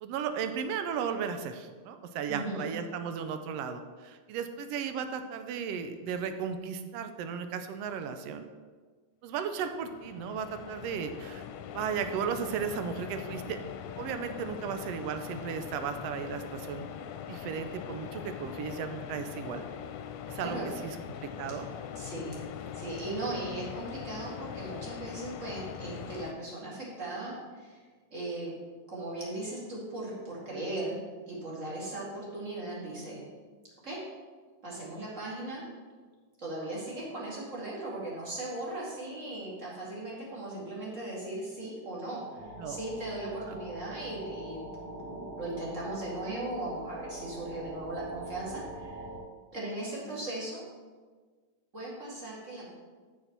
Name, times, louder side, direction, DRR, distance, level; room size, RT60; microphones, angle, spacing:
voice 1, 0.0-8.4 9.2-11.4 11.7-13.6 14.0-16.9 17.3-19.6 20.3-20.6 20.8-21.0 21.2-21.7 42.6-42.8 43.3-43.6, right 7 dB, 80° right, 8 dB, 1.4 m, -35 dB
voice 2, 2.3-2.7 20.4-20.7 22.0-22.5 22.7-27.8 28.1-28.5 28.9-31.0 31.3-33.3 33.8-34.0 34.6-35.7 36.4-49.0 49.5-50.6 51.7-52.7, right 2 dB, 25° right, -6 dB, 2.3 m, -38 dB
sound 1, 9.7-26.3, left 9 dB, 80° left, 1.9 m, -42 dB
sound 2, 42.4-49.2, right 1 dB, 60° right, 3.3 m, -43 dB
6.6 x 6.1 x 6.7 m, 1.5 s
omnidirectional pair, 3.4 m